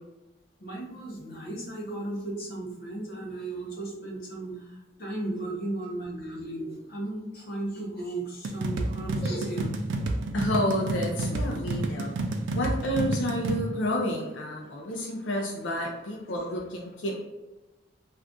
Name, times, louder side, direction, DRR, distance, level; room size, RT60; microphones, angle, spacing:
voice 1, 0.6-9.7, right 2 dB, 50° left, -2 dB, 0.8 m, -35 dB
sound 1, 8.4-13.6, right 2 dB, 85° right, 0.4 m, -30 dB
voice 2, 10.3-12.1 12.5-17.2, left 1 dB, 80° left, -1 dB, 0.5 m, -30 dB
2.5 x 2.4 x 3.5 m, 1.1 s
head